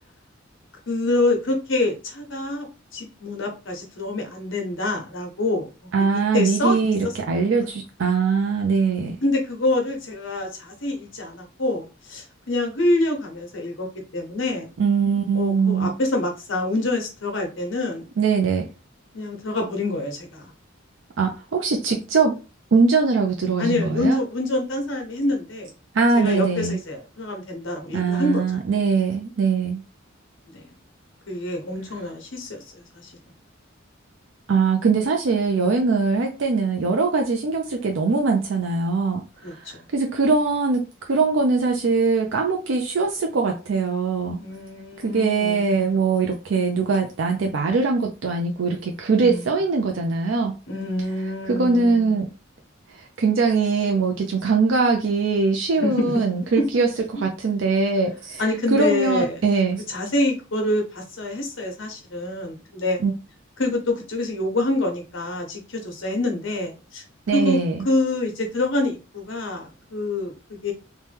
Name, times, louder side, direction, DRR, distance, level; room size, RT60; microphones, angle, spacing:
voice 1, 0.9-2.7 2.9-5.9 6.3-6.8 9.2-13.9 14.1-14.7 15.3-18.1 19.1-20.5 23.6-25.7 26.1-28.4 30.5-30.7 31.3-33.1 39.4-39.8 44.4-45.9 49.2-49.5 50.7-52.2 55.8-56.2 56.6-56.7 57.2-57.3 58.4-59.3 59.9-63.0 63.6-67.0 67.3-67.6 67.8-70.7, left 2 dB, 70° left, 3 dB, 1.0 m, -26 dB
voice 2, 5.9-9.2 14.8-15.9 18.2-18.7 21.2-22.4 22.7-24.2 25.9-26.8 27.9-29.8 34.5-44.4 45.0-50.5 51.5-52.3 52.9-58.4 58.7-59.8 63.0-63.1 67.3-67.8, right 4 dB, 70° right, 2 dB, 0.5 m, -22 dB
2.9 x 2.2 x 3.3 m, 0.31 s
head